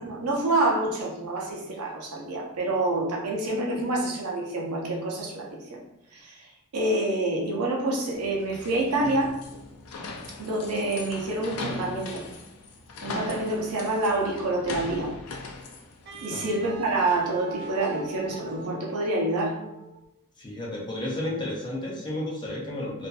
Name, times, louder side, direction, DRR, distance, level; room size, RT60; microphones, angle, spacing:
voice 1, 0.0-5.8 6.1-9.4 10.4-12.2 13.0-15.1 16.2-19.6, right 2 dB, 85° right, -1 dB, 0.6 m, -27 dB
sound 1, 8.1-18.6, left 3 dB, 80° left, 0.4 m, -40 dB
Wind instrument woodwind instrument, 16.1-20.1, right 5 dB, 50° right, 0.3 m, -42 dB
voice 2, 20.4-23.1, left 1 dB, 20° left, -3 dB, 0.5 m, -32 dB
2.5 x 2.4 x 2.3 m, 0.86 s
head